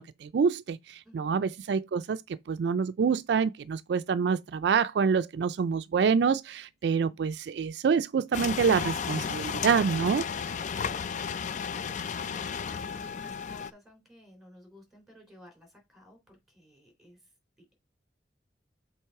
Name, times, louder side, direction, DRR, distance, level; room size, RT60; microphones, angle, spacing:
voice 1, 0.0-2.2 2.5-10.3, right 6 dB, 70° right, 0.3 m, -26 dB
voice 2, 1.0-1.4 6.9-7.2 12.3-17.3 17.6-17.7, equal, ahead, 3.3 m, -56 dB
sound 1, 8.3-13.7, left 6 dB, 45° left, 0.4 m, -33 dB
7.7 x 3.2 x 4.6 m
head